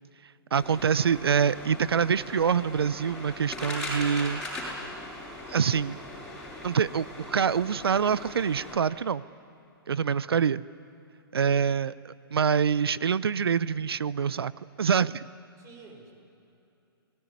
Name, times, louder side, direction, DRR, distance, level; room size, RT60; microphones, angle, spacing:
voice 1, 0.5-4.4 5.5-6.0 6.6-9.2 9.9-10.6 11.3-14.5 14.8-15.2, right 7 dB, 80° right, 19 dB, 0.6 m, -25 dB
sound 1, 0.6-8.8, left 1 dB, 5° left, 7.4 m, -39 dB
voice 2, 11.3-11.7 15.6-16.1, right 4 dB, 25° right, 4 dB, 5.1 m, -51 dB
27.5 x 19.5 x 9.7 m, 2.7 s
hypercardioid pair, 130°, 13 cm